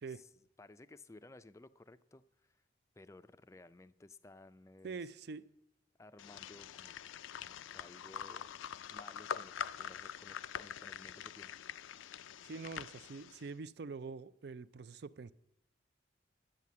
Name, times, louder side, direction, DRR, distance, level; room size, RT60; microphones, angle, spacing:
voice 1, 0.6-2.6 3.0-5.0 6.0-6.9 7.4-8.5 8.9-11.5, left 2 dB, 15° left, 0.4 m, -57 dB
voice 2, 4.8-5.5 12.4-15.3, right 4 dB, 55° right, 0.4 m, -45 dB
sound 1, 6.2-13.5, left 8 dB, 85° left, 0.4 m, -45 dB
11.0 x 7.5 x 8.4 m
head